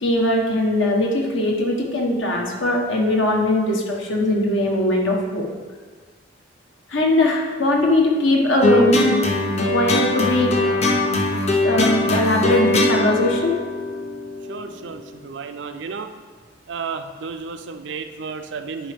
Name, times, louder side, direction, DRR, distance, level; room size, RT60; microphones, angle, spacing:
voice 1, 0.0-5.5 6.9-9.0 9.6-10.5 11.6-13.6, left 1 dB, 70° left, 0 dB, 1.2 m, -20 dB
sound 1, 8.6-15.1, left 2 dB, 35° left, 0.7 m, -21 dB
voice 2, 10.5-10.9 14.5-16.1 16.7-18.9, right 5 dB, 60° right, 8 dB, 0.4 m, -33 dB
10.0 x 4.8 x 3.6 m, 1.5 s
head